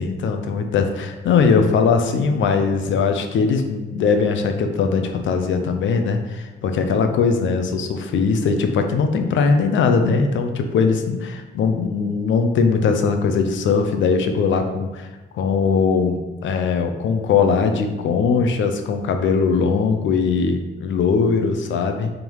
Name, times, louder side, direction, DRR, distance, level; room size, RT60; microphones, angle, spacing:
voice 1, 0.0-15.1 15.3-22.1, left 5 dB, 70° left, 6 dB, 0.8 m, -20 dB
4.6 x 3.9 x 5.4 m, 1.2 s
cardioid pair, 90°, 20 cm